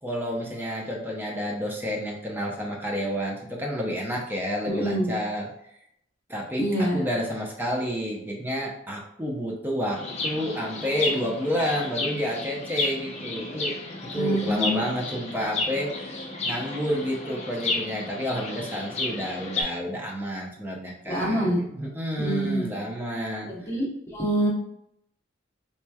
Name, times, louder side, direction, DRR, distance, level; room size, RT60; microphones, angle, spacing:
voice 1, 0.0-5.5 6.3-13.8 14.0-16.1 16.4-23.5, equal, 10° right, -2 dB, 0.6 m, -30 dB
voice 2, 4.7-5.1 6.6-7.0 14.1-14.8 21.1-21.6 22.2-22.7 23.4-24.5, right 1 dB, 15° left, -4 dB, 0.9 m, -26 dB
Chirp tweet, 9.9-19.6, left 3 dB, 35° left, 0.5 m, -32 dB
4.1 x 3.1 x 2.3 m, 0.76 s
head